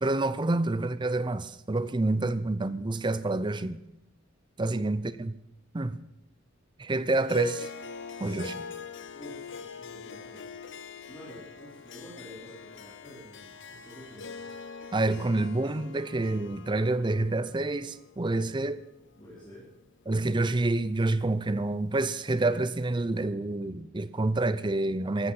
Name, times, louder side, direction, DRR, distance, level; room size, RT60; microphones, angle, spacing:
voice 1, 0.0-3.8 4.6-5.3 5.7-6.0 6.8-7.7 8.2-8.6 14.9-18.8 20.1-25.3, right 2 dB, 25° right, 0.6 m, -28 dB
voice 2, 2.0-2.3 4.7-4.8 8.1-8.4 9.1-10.6 11.1-14.5 18.2-18.4 19.1-19.7, equal, 25° left, 4.0 m, -49 dB
Harp, 7.2-19.8, left 5 dB, 65° left, 0.9 m, -43 dB
14.5 x 13.0 x 5.7 m
head